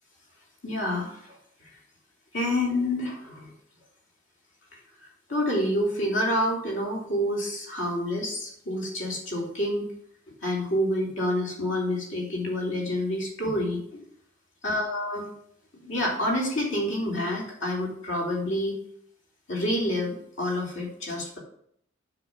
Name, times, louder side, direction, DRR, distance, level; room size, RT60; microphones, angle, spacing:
voice 1, 0.6-1.4 2.3-3.5 5.3-9.9 10.4-14.0 14.6-15.3 15.8-18.7 19.5-21.4, left 1 dB, 65° left, -2 dB, 3.4 m, -28 dB
7.6 x 6.4 x 5.4 m, 0.66 s
head